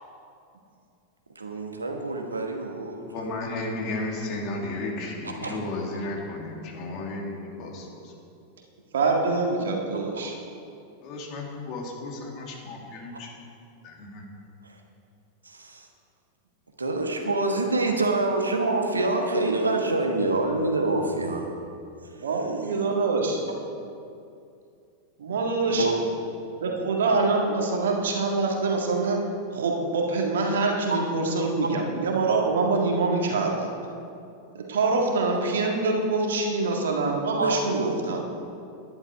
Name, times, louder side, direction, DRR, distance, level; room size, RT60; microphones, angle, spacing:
voice 1, 1.3-3.0 5.4-5.6 14.6-14.8 15.4-15.9 16.8-21.5 22.0-22.3 25.7-25.9 37.4-37.6, right 2 dB, 80° right, 2 dB, 1.3 m, -26 dB
voice 2, 3.1-8.1 11.0-13.3 13.8-14.2, left 2 dB, 40° left, 0 dB, 2.2 m, -34 dB
voice 3, 8.9-10.4 22.2-23.4 25.2-25.9 26.6-29.2 29.5-33.7 34.6-38.2, right 3 dB, 60° right, 1 dB, 1.8 m, -25 dB
11.0 x 10.5 x 4.8 m, 2.5 s
figure-of-eight pair, 90°, 0 cm